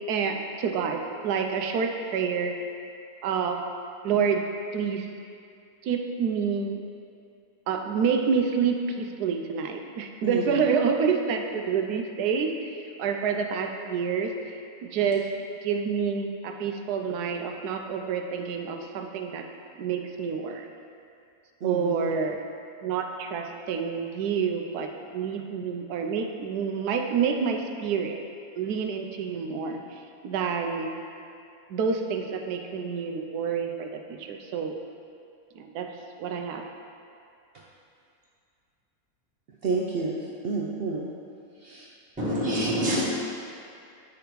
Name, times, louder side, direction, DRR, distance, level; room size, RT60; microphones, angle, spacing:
voice 1, 0.1-2.6 3.2-3.6 4.0-4.4 4.7-5.1 5.8-6.8 7.7-12.5 13.0-14.5 14.8-15.3 15.6-19.4 19.8-20.7 21.6-22.4 22.8-28.2 28.6-29.8 30.2-30.9 31.7-34.8 35.6-35.9 36.2-36.6, right 6 dB, 90° right, 4 dB, 1.2 m, -28 dB
voice 2, 10.2-10.6 21.6-22.1 39.6-40.2 40.4-41.1 41.6-41.9, right 3 dB, 70° right, -3 dB, 0.5 m, -30 dB
voice 3, 42.2-43.0, equal, 5° right, -8 dB, 1.2 m, -25 dB
9.1 x 5.0 x 3.0 m, 2.5 s
omnidirectional pair, 1.6 m